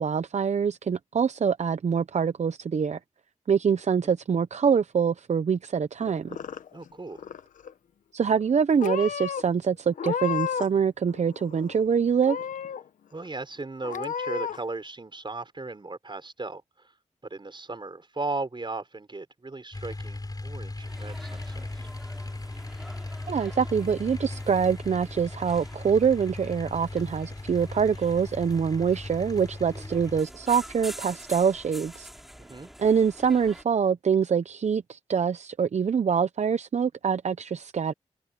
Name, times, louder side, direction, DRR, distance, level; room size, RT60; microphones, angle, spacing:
voice 1, 0.0-3.0 3.5-6.4 8.1-12.4 23.3-32.1 32.8-37.9, right 6 dB, 65° right, 0.8 m, -25 dB
Purr / Meow, 6.0-6.9 7.2-7.7 8.4-8.5 8.8-9.4 9.9-10.8 11.1-11.8 12.2-12.8 13.3-13.4 13.8-14.6, left 8 dB, 90° left, 1.1 m, -32 dB
voice 2, 6.7-7.2 13.1-16.9 17.2-21.9 32.4-32.7, right 3 dB, 40° right, 4.6 m, -37 dB
sound 1, 19.7-30.2, left 2 dB, 30° left, 6.4 m, -38 dB
sound 2, 20.8-33.6, equal, ahead, 2.9 m, -46 dB
cardioid pair, 45°, 13 cm